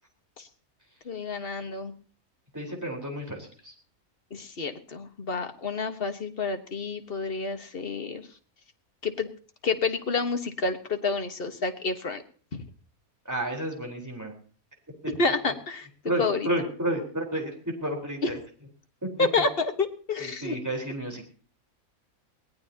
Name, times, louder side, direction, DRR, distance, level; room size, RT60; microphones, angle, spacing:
voice 1, 1.0-1.9 4.3-8.2 9.0-9.3 9.6-12.2 12.5-12.6 15.2-15.9 16.2-16.5 18.2-18.3 19.2-20.5, left 4 dB, 40° left, 6 dB, 1.6 m, -29 dB
voice 2, 2.5-3.7 13.2-14.3 15.2-15.3 16.0-17.5 17.8-18.4 19.0-19.3 20.2-21.2, right 1 dB, 10° right, 1 dB, 4.3 m, -31 dB
22.0 x 18.0 x 2.9 m, 0.42 s
omnidirectional pair, 1.5 m